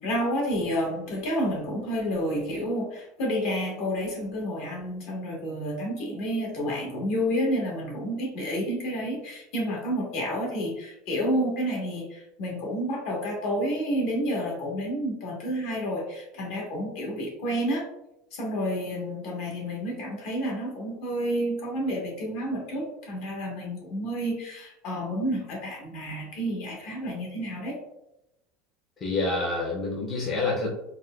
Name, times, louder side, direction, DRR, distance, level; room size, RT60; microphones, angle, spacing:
voice 1, 0.0-17.9 18.3-27.7, equal, 60° left, -2 dB, 1.2 m, -30 dB
voice 2, 29.0-30.7, left 3 dB, 25° left, -4 dB, 0.5 m, -27 dB
4.1 x 2.2 x 2.2 m, 0.86 s
cardioid pair, 160°, 0 cm